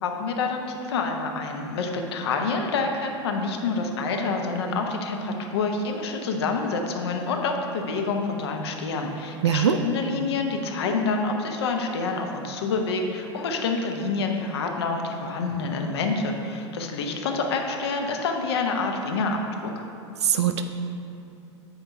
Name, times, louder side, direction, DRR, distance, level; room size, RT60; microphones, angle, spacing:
voice 1, 0.0-19.7, left 4 dB, 60° left, 3 dB, 0.7 m, -27 dB
voice 2, 9.4-9.8 20.2-20.6, right 9 dB, 65° right, 8 dB, 0.4 m, -21 dB
8.6 x 3.1 x 5.5 m, 2.6 s
figure-of-eight pair, 85°, 15 cm